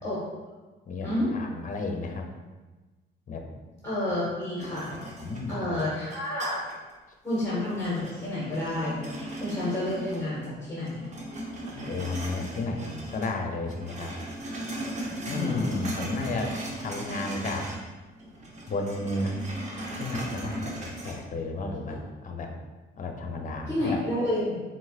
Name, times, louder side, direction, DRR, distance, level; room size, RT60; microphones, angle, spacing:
voice 1, 0.9-2.3 3.3-3.4 5.2-5.8 11.7-14.1 15.3-16.5 16.8-17.7 18.7-19.4 20.0-22.5 23.0-24.0, left 2 dB, 40° left, 3 dB, 0.7 m, -32 dB
voice 2, 3.8-4.9 5.5-6.6 7.2-9.0 9.4-11.1 15.2-15.6 21.9-22.0 23.7-24.6, left 1 dB, 15° left, -8 dB, 1.5 m, -29 dB
sound 1, 4.6-6.9 7.3-10.5 10.8-13.3 13.6-17.9 18.2-21.1, right 1 dB, 35° right, 1.0 m, -38 dB
4.5 x 3.9 x 2.4 m, 1.2 s
cardioid pair, 90°, 20 cm